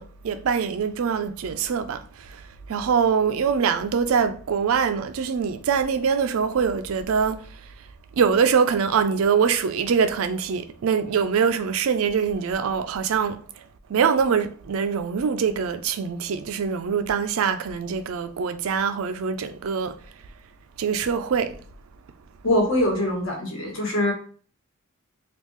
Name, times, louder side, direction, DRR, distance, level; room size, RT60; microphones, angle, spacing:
voice 1, 0.0-2.4 2.7-7.4 8.2-13.4 13.9-20.0 20.8-21.6, right 6 dB, 70° right, 0.4 m, -23 dB
voice 2, 22.4-24.1, left 1 dB, 60° left, 1.2 m, -23 dB
3.5 x 2.4 x 3.1 m
head